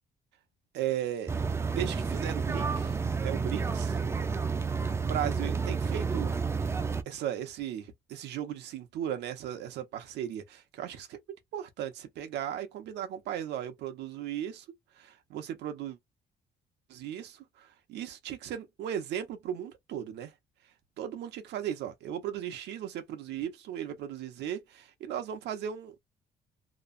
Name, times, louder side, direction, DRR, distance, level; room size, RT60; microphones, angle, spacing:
voice 1, 0.7-1.3 1.7-4.0 5.0-6.4 7.1-11.2 11.5-14.6 15.0-16.0 16.9-20.3 21.0-26.0, right 10 dB, 90° right, 0.8 m, -36 dB
sound 1, 1.3-7.0, right 5 dB, 15° right, 0.3 m, -30 dB
3.0 x 2.1 x 2.5 m
cardioid pair, 155°, 17 cm